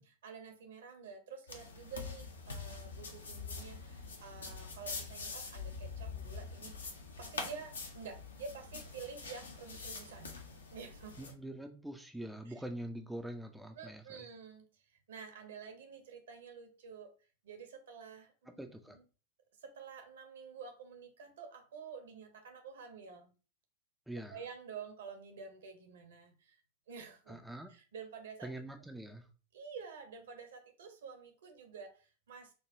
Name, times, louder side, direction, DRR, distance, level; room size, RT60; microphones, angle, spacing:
voice 1, 0.0-6.7 7.2-10.3 10.7-11.3 12.5-12.6 13.8-17.1 17.4-18.3 18.9-19.0 19.6-23.3 24.3-26.6 26.9-27.4 27.7-28.5 29.5-32.5, right 5 dB, 60° right, 5 dB, 0.8 m, -49 dB
sound 1, 1.5-11.3, left 4 dB, 70° left, 0.6 m, -45 dB
voice 2, 11.2-14.3 18.5-19.0 24.1-24.4 27.3-27.7 28.4-29.3, right 1 dB, ahead, 5 dB, 0.3 m, -44 dB
4.7 x 2.2 x 2.6 m, 0.36 s
figure-of-eight pair, 90°, 0 cm